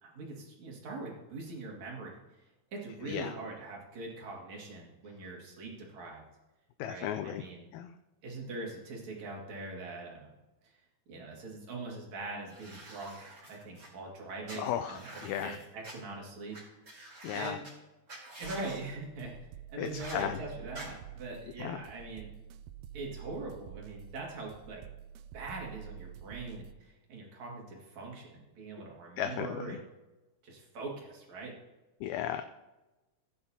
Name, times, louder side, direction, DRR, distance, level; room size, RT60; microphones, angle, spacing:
voice 1, 0.0-2.2 2.7-6.2 6.8-7.7 8.2-10.3 10.6-10.7 11.1-16.6 17.3-17.6 18.4-19.3 19.7-22.3 22.9-24.8 25.3-29.8 30.4-31.5, right 2 dB, 65° right, -2 dB, 3.4 m, -42 dB
voice 2, 6.8-7.4 7.7-7.9 14.6-15.6 17.2-17.6 19.8-20.4 21.6-21.8 29.2-29.6 32.0-32.4, left 11 dB, 80° left, 9 dB, 1.8 m, -35 dB
sound 1, 12.5-13.9 14.5-15.9 16.5-16.6 16.9-17.7 18.1-18.8 19.9-20.2 20.7-20.9, right 1 dB, 25° right, 3.5 m, -48 dB
sound 2, 18.4-26.7, right 10 dB, 80° right, 1.8 m, -48 dB
15.5 x 10.0 x 2.8 m, 1.1 s
omnidirectional pair, 3.6 m